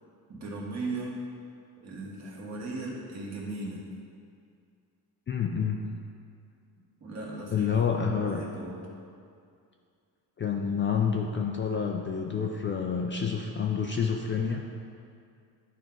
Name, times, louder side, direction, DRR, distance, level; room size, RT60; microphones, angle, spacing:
voice 1, 0.3-1.2 1.8-3.8 7.0-7.7 8.0-8.8, right 2 dB, 40° right, -4 dB, 1.7 m, -37 dB
voice 2, 5.3-5.8 7.5-8.4 10.4-14.6, left 6 dB, 30° left, 1 dB, 0.4 m, -28 dB
11.0 x 4.6 x 3.9 m, 2.3 s
cardioid pair, 130°, 40 cm